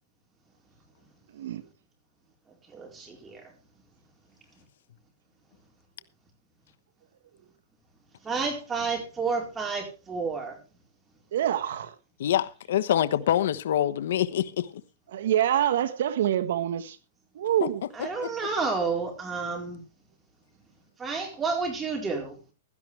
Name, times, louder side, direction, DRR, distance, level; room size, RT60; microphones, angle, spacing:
voice 1, 2.7-3.4 8.2-10.5 17.9-19.8 21.0-22.4, right 4 dB, 15° right, 4.3 m, -30 dB
voice 2, 11.3-11.9 15.1-17.0 17.3-17.8, right 11 dB, 65° right, 1.5 m, -26 dB
voice 3, 12.2-14.7 17.6-17.7 18.0-18.3, left 11 dB, 70° left, 1.1 m, -25 dB
16.0 x 12.5 x 3.4 m
hypercardioid pair, 155°, 0 cm